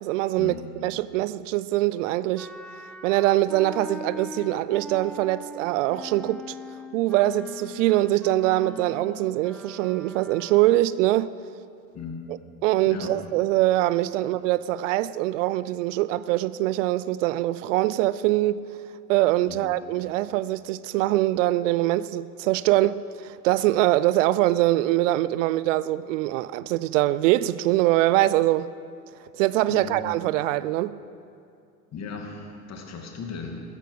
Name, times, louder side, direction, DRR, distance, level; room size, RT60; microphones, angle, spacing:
voice 1, 0.0-0.5 0.8-2.5 3.0-6.6 6.9-11.3 12.6-18.7 19.1-28.7 29.3-31.0, right 16 dB, 55° right, 0.5 m, -23 dB
Wind instrument woodwind instrument, 2.3-11.0, left 2 dB, ahead, 0.3 m, -41 dB
voice 2, 11.9-12.4 12.9-13.1 14.2-14.3 19.5-19.8 29.7-30.0 31.9-33.6, left 5 dB, 35° left, 2.6 m, -37 dB
15.5 x 14.5 x 4.9 m
hypercardioid pair, 85°, 47 cm